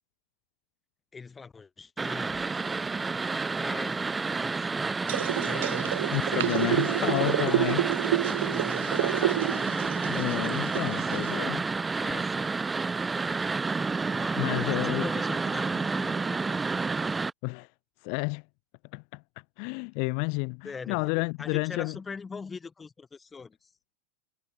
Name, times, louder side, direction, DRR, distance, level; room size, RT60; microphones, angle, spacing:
voice 1, 1.1-2.5 3.3-7.8 8.1-8.2 8.4-9.8 11.0-11.6 12.0-12.5 14.2-16.7 20.6-23.7, left 5 dB, 20° left, 6.1 m, -42 dB
sound 1, 2.0-17.3, right 4 dB, 15° right, 0.9 m, -30 dB
sound 2, 5.1-11.4, right 16 dB, 65° right, 0.9 m, -29 dB
voice 2, 6.1-7.8 10.0-11.6 14.3-15.1 17.4-17.7 18.0-18.4 18.9-19.2 19.6-22.0, left 40 dB or more, 55° left, 2.6 m, -30 dB
hypercardioid pair, 90°, 0 cm